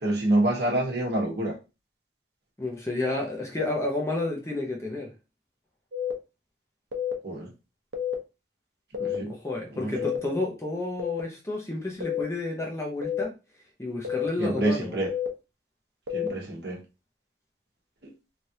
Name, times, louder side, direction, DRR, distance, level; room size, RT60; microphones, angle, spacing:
voice 1, 0.0-1.5 7.2-7.5 9.0-9.3 14.4-15.1 16.1-16.8, right 1 dB, 60° right, -1 dB, 1.0 m, -26 dB
voice 2, 2.6-5.1 9.3-13.3 13.8-15.0, left 2 dB, 15° left, -1 dB, 0.6 m, -31 dB
sound 1, 5.9-6.1 6.9-7.1 7.9-8.1 8.9-9.1 9.9-10.2 11.0-11.2 12.0-12.2 13.0-13.2 14.0-14.3 15.1-15.3 16.1-16.3, left 9 dB, 85° right, 0.7 m, -29 dB
3.2 x 2.4 x 2.7 m, 0.28 s
head